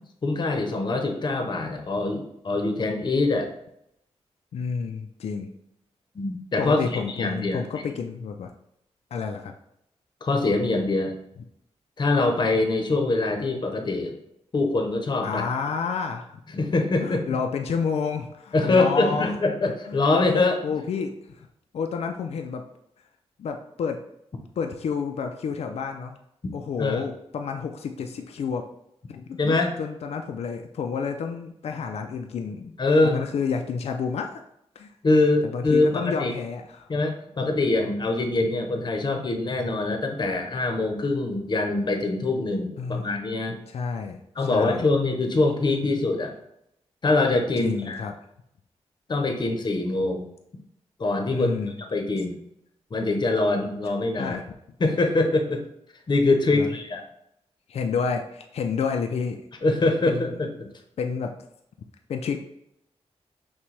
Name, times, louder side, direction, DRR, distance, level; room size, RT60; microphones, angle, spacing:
voice 1, 0.2-3.5 6.1-7.6 10.2-11.1 12.0-14.2 14.5-15.4 16.5-17.2 18.5-20.6 26.8-27.0 29.4-29.7 32.8-33.2 35.0-36.3 36.9-43.6 44.4-46.3 47.0-48.0 49.1-50.3 51.0-51.5 51.9-52.4 52.9-54.4 54.8-55.6 56.1-57.0 59.6-60.7, left 2 dB, 40° left, 4 dB, 0.7 m, -24 dB
voice 2, 4.5-5.5 6.6-8.5 9.1-9.5 11.4-11.5 15.2-16.4 17.0-19.3 19.9-20.0 20.6-21.5 21.7-22.6 23.4-24.0 24.6-26.2 26.5-28.7 29.1-32.8 33.0-34.4 34.8-34.9 35.4-36.9 42.8-43.2 43.7-44.9 47.6-48.1 51.3-51.8 54.2-54.4 56.5-56.7 57.7-59.4 60.1-60.4 61.0-61.3 62.1-62.4, left 5 dB, 65° left, 4 dB, 0.4 m, -30 dB
5.9 x 2.2 x 3.2 m, 0.77 s
cardioid pair, 85°, 11 cm